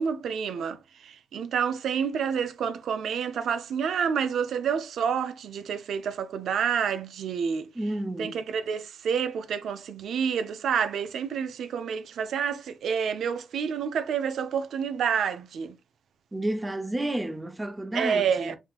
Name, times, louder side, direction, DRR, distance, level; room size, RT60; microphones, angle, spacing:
voice 1, 0.0-7.7 8.2-15.8 17.9-18.5, right 7 dB, 85° right, 0.5 m, -28 dB
voice 2, 7.8-8.4 16.3-18.6, right 1 dB, 15° right, 0.5 m, -31 dB
5.5 x 2.9 x 2.3 m
wide cardioid pair, 155°, 0 cm